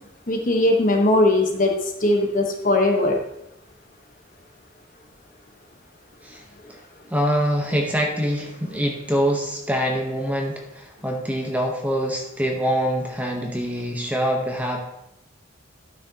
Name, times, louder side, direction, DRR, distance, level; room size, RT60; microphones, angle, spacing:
voice 1, 0.3-3.2, left 2 dB, 40° left, 2 dB, 1.0 m, -20 dB
voice 2, 7.1-14.8, equal, 10° right, 1 dB, 0.9 m, -24 dB
12.0 x 6.2 x 2.8 m, 0.85 s
head